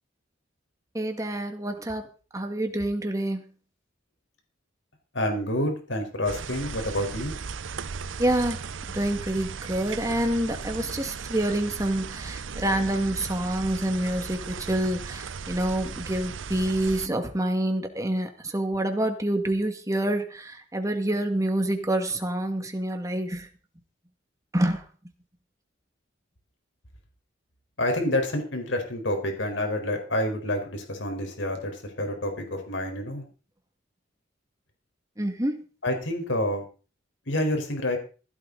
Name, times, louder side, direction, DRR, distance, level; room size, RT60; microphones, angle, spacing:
voice 1, 0.9-2.1 2.3-3.4 8.2-8.6 8.9-23.5 24.5-24.8 35.2-35.6, right 1 dB, 15° right, 5 dB, 2.0 m, -27 dB
voice 2, 5.1-7.3 27.8-33.2 35.8-36.6 37.3-38.0, left 1 dB, 75° left, 4 dB, 4.5 m, -28 dB
sound 1, 6.3-17.1, right 5 dB, 85° right, 0.7 m, -37 dB
16.0 x 12.0 x 4.0 m, 0.36 s
head